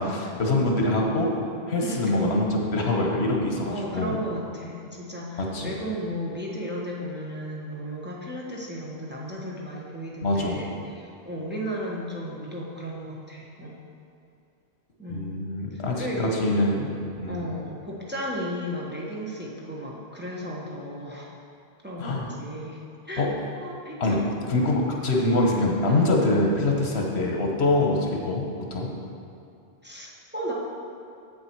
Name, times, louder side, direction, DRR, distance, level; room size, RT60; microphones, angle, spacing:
voice 1, 0.0-1.3 1.7-4.2 5.4-5.8 10.2-10.6 15.1-16.9 17.2-17.4 22.0-22.3 23.2-23.3 24.0-24.2 24.5-28.9, left 2 dB, 80° left, 0 dB, 1.3 m, -24 dB
voice 2, 1.8-2.4 3.7-13.8 15.0-15.3 15.7-16.6 17.3-21.3 21.8-24.2 25.9-26.5 29.8-30.5, equal, 10° right, -4 dB, 1.1 m, -34 dB
7.8 x 7.2 x 4.6 m, 2.6 s
omnidirectional pair, 1.1 m